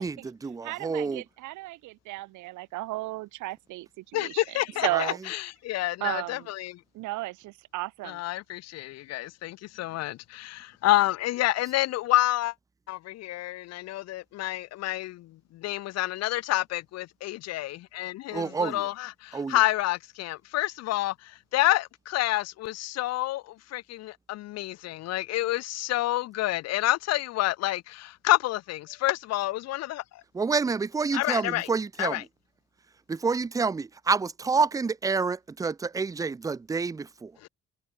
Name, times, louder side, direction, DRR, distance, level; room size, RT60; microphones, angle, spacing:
voice 1, 0.0-1.2 4.9-5.2 18.3-18.9 19.3-19.6 30.3-32.3 33.1-37.3, right 4 dB, 10° right, 0.5 m, -28 dB
voice 2, 0.6-4.6 4.8-5.2 6.0-6.5 6.9-8.2, right 19 dB, 80° right, 0.9 m, -34 dB
voice 3, 4.1-6.8 8.0-12.5 12.9-15.3 15.5-21.1 21.5-23.4 23.7-30.0 31.1-31.7 32.0-32.2 37.4-37.5, left 16 dB, 60° left, 0.5 m, -28 dB
cardioid pair, 150°, 29 cm